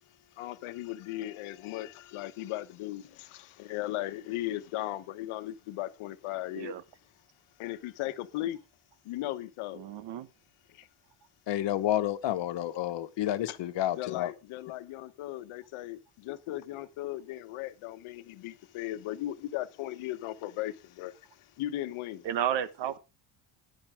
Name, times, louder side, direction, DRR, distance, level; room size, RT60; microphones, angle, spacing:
voice 1, 0.4-6.8 7.6-8.6 9.0-9.8 10.8-10.9 13.5-13.6 13.9-21.1 21.6-22.2, left 15 dB, 85° left, 1.2 m, -37 dB
voice 2, 9.8-10.3 22.2-23.0, right 10 dB, 60° right, 1.2 m, -32 dB
voice 3, 11.5-14.3, left 12 dB, 60° left, 1.3 m, -30 dB
14.0 x 10.5 x 3.6 m
cardioid pair, 135°, 48 cm